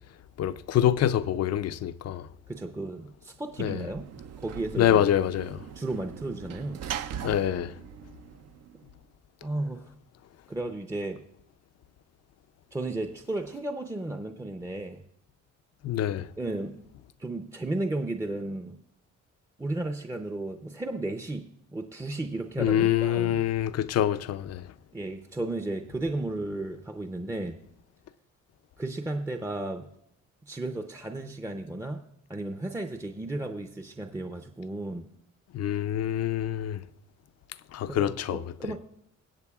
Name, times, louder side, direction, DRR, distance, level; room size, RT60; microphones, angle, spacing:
voice 1, 0.4-2.3 3.6-3.8 4.8-5.6 7.2-7.7 15.8-16.3 22.6-24.6 35.5-36.8 37.7-38.5, left 11 dB, 55° left, 0.5 m, -26 dB
voice 2, 2.5-4.1 4.4-5.1 5.7-7.1 9.4-9.9 10.5-11.2 12.7-15.0 16.4-16.8 17.2-18.8 19.6-23.4 24.9-27.6 28.8-29.9 30.5-32.0 32.3-35.1 37.9-38.8, right 2 dB, 10° right, 0.6 m, -34 dB
Sliding door / Slam, 3.6-9.0, right 9 dB, 55° right, 0.5 m, -41 dB
22.0 x 8.0 x 2.3 m
cardioid pair, 90°, 30 cm